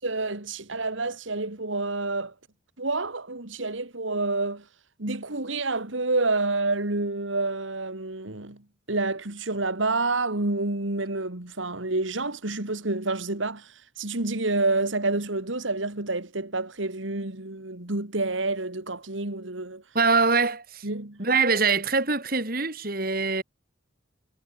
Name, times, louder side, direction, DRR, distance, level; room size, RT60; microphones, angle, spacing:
voice 1, 0.0-2.3 2.8-4.6 5.0-8.6 8.9-19.8 20.8-21.2, right 2 dB, 80° right, 2.6 m, -28 dB
voice 2, 19.9-20.9 21.2-23.4, right 4 dB, 50° right, 3.8 m, -23 dB
head